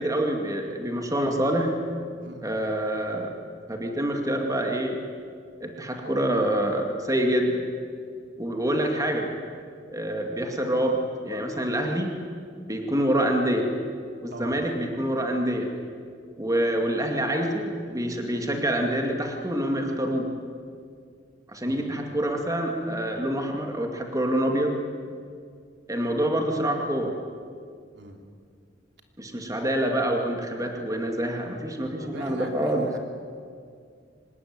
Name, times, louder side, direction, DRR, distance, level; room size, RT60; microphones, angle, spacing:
voice 1, 0.0-1.7 2.4-3.3 3.7-5.0 5.6-7.6 8.4-9.3 9.9-12.1 12.7-13.7 14.2-15.7 16.4-20.3 21.5-24.8 25.9-27.1 29.2-32.9, right 1 dB, 20° right, 2 dB, 2.3 m, -26 dB
voice 2, 2.2-2.5 14.3-14.6 21.6-21.9 27.9-28.2 32.0-33.0, right 1 dB, 65° right, 3 dB, 3.1 m, -40 dB
25.0 x 20.0 x 9.5 m, 2.2 s
head